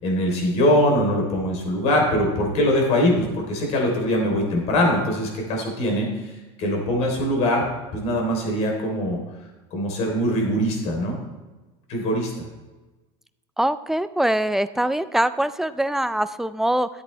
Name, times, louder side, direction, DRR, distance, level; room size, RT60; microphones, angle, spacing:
voice 1, 0.0-7.7 7.9-9.2 9.7-11.2 11.9-12.3, equal, 55° left, 1 dB, 3.5 m, -22 dB
voice 2, 13.6-16.9, right 1 dB, 5° right, 13 dB, 0.3 m, -23 dB
13.0 x 8.3 x 3.3 m, 1.2 s
supercardioid pair, 125°, 13 cm